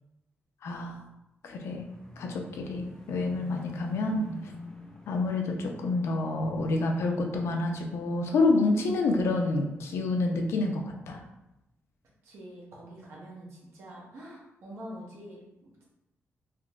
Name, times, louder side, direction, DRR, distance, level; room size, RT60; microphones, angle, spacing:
voice 1, 0.6-1.0 1.4-1.9 2.2-4.3 5.1-11.2, left 2 dB, 75° left, 2 dB, 0.5 m, -28 dB
sound 1, 1.7-8.8 9.2-9.7, equal, 15° left, 0.4 m, -46 dB
voice 2, 12.2-15.8, equal, 80° right, -4 dB, 0.9 m, -45 dB
3.6 x 2.9 x 2.3 m, 0.91 s
wide cardioid pair, 165°, 5 cm